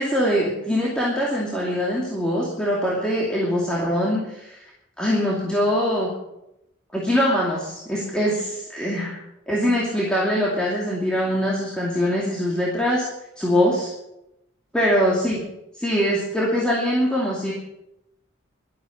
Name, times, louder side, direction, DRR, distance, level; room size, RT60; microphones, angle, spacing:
voice 1, 0.0-4.6 5.0-6.1 6.9-9.2 9.5-13.1 13.4-13.9 14.7-15.4 15.8-17.5, equal, 5° left, -5 dB, 2.6 m, -23 dB
12.0 x 12.0 x 7.5 m, 0.86 s
head